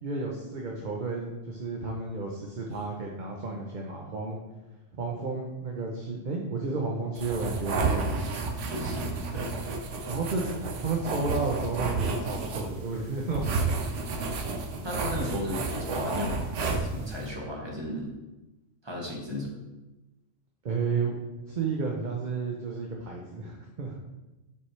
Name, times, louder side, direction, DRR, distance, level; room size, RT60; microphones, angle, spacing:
voice 1, 0.0-4.4 5.0-8.6 10.1-13.8 20.6-21.1 21.5-24.0, right 3 dB, 45° right, 0 dB, 0.8 m, -32 dB
sound 1, 7.2-17.3, right 3 dB, 70° right, 1.1 m, -31 dB
voice 2, 8.7-9.5 14.8-18.1 18.8-19.5, left 1 dB, 20° right, -2 dB, 1.4 m, -35 dB
7.7 x 5.8 x 3.3 m, 1.1 s
omnidirectional pair, 1.3 m